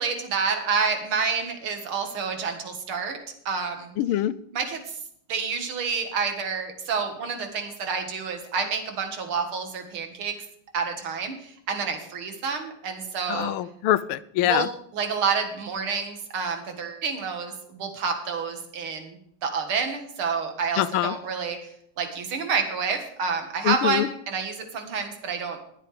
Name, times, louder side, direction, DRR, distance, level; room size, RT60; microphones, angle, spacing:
voice 1, 0.0-3.2 3.5-3.9 4.5-5.0 5.3-10.4 10.7-13.5 14.4-14.7 14.9-21.6 22.0-25.6, right 5 dB, 85° right, 5 dB, 2.6 m, -28 dB
voice 2, 4.0-4.3 13.3-14.7 20.8-21.2 23.6-24.1, left 13 dB, 90° left, 17 dB, 1.5 m, -24 dB
20.5 x 7.6 x 3.4 m, 0.70 s
omnidirectional pair, 2.3 m